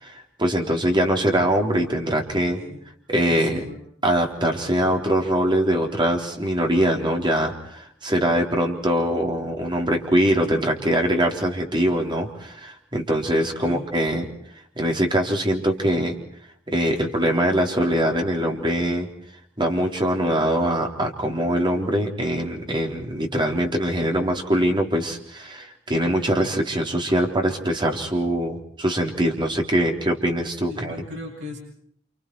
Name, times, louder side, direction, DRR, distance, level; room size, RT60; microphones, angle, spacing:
voice 1, 0.0-2.6 3.1-3.6 4.0-14.3 14.8-16.1 16.7-19.1 19.6-31.0, right 1 dB, 25° right, 2 dB, 3.7 m, -23 dB
voice 2, 3.3-3.8 13.6-13.8 30.7-31.6, left 2 dB, 65° right, -1 dB, 7.8 m, -37 dB
30.0 x 28.5 x 4.7 m, 0.63 s
head